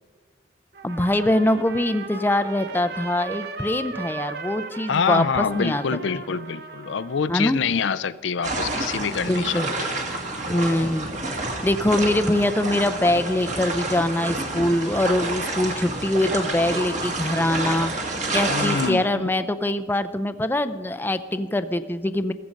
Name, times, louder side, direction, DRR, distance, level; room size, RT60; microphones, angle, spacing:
Trumpet, 0.7-7.5, right 3 dB, 55° right, 1.0 m, -37 dB
voice 1, 0.8-6.0 7.3-7.6 9.2-9.7 10.5-11.1 11.6-17.9 18.3-22.3, left 1 dB, 10° left, 11 dB, 0.5 m, -23 dB
voice 2, 4.9-9.9 18.5-19.4, left 6 dB, 75° left, 15 dB, 0.5 m, -26 dB
sound 1, 8.4-18.9, right 2 dB, 40° right, 1.9 m, -29 dB
15.5 x 14.5 x 5.2 m, 1.5 s
head